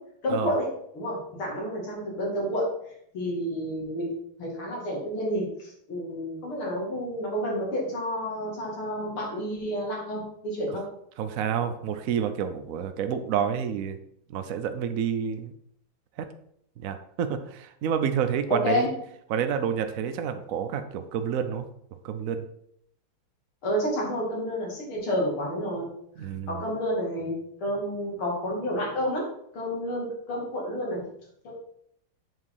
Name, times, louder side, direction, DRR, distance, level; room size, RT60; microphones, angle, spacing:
voice 1, 0.2-0.7 0.9-2.7 3.1-4.1 4.4-10.8 18.5-18.9 23.6-25.9 26.5-29.2 29.5-31.0 31.4-31.5, equal, 80° left, -3 dB, 3.6 m, -30 dB
voice 2, 11.2-14.0 14.3-15.5 16.2-16.3 16.8-18.9 19.3-21.6 22.0-22.5 26.2-26.6, right 8 dB, 85° right, 9 dB, 0.7 m, -29 dB
7.7 x 4.9 x 5.5 m, 0.69 s
omnidirectional pair, 2.3 m